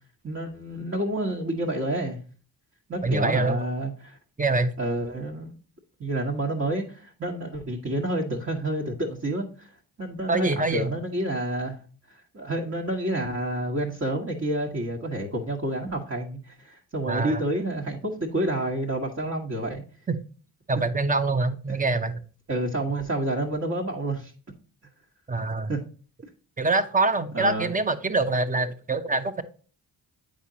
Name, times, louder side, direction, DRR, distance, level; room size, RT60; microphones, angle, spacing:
voice 1, 0.2-2.2 2.9-4.2 4.8-5.5 6.0-9.7 10.0-11.8 12.1-19.8 22.5-24.3 25.7-25.8 27.3-27.7, right 1 dB, 35° right, -2 dB, 1.4 m, -29 dB
voice 2, 3.0-3.7 4.4-4.7 10.3-10.9 17.1-17.4 20.1-20.2 20.7-22.2 25.3-25.7 26.6-29.4, right 3 dB, 20° right, 10 dB, 0.8 m, -25 dB
8.1 x 5.2 x 2.8 m, 0.39 s
supercardioid pair, 45°, 45 cm